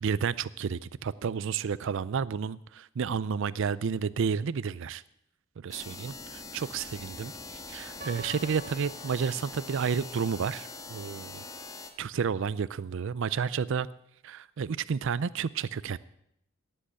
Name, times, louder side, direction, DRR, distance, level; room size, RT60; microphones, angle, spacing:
voice 1, 0.0-5.0 5.6-11.4 12.0-13.9 14.2-16.0, right 6 dB, 65° right, 18 dB, 0.4 m, -31 dB
sound 1, 5.7-11.9, left 3 dB, 15° left, 1.5 m, -43 dB
Piano, 8.0-10.0, left 2 dB, 45° right, 2.4 m, -47 dB
16.5 x 7.8 x 8.5 m, 0.76 s
head